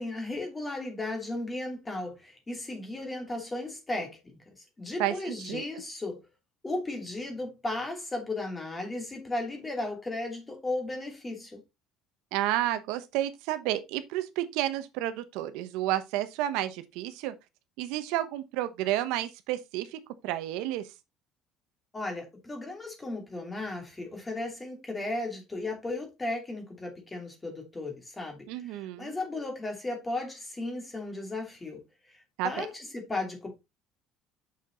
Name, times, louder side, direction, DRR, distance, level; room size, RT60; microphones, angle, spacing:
voice 1, 0.0-4.4 4.8-6.2 6.6-11.6 21.9-31.8 32.1-33.5, left 2 dB, 15° left, 2.8 m, -35 dB
voice 2, 5.0-5.6 12.3-17.3 17.8-20.8 28.5-29.1 32.4-32.6, right 14 dB, 80° right, 1.0 m, -31 dB
6.7 x 6.4 x 3.9 m
cardioid pair, 150°, 0 cm